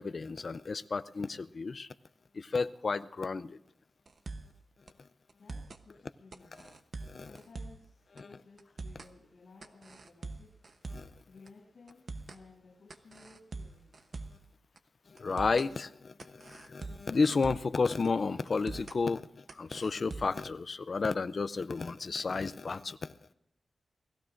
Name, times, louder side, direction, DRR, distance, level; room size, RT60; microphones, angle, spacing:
voice 1, 0.0-1.9 2.3-3.6 7.0-7.3 8.2-8.3 10.9-11.1 15.1-23.1, left 4 dB, 45° left, 0.4 m, -32 dB
sound 1, 4.1-4.6 4.9-5.0 5.3-5.8 6.3-7.9 8.2-8.3 8.6-9.1 9.6-11.2 11.5-11.6 11.9-12.4 12.9-14.5 14.8-14.9 15.2-15.7 16.2-17.8 18.0-18.1 18.5-19.0 19.5-20.5, right 3 dB, 45° right, 0.8 m, -44 dB
voice 2, 5.4-6.7 7.3-10.5 11.3-13.9, left 3 dB, 65° left, 7.2 m, -57 dB
28.5 x 17.5 x 2.5 m
wide cardioid pair, 165°, 0 cm